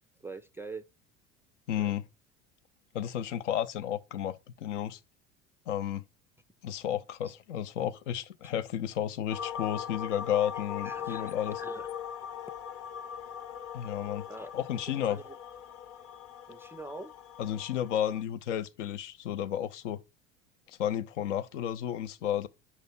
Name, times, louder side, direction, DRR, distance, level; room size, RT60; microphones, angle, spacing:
voice 1, 0.2-0.8 1.8-1.9 8.4-8.5 10.8-11.9 14.3-14.6 15.0-15.4 16.5-17.1, right 3 dB, 5° right, 0.4 m, -44 dB
voice 2, 1.7-2.1 2.9-5.0 5.7-6.0 6.6-11.6 13.7-14.3 14.5-15.2 17.4-20.0 20.7-22.5, left 10 dB, 70° left, 0.7 m, -32 dB
sound 1, 9.3-18.2, left 9 dB, 35° left, 0.9 m, -41 dB
5.5 x 3.3 x 5.7 m
figure-of-eight pair, 70°, 38 cm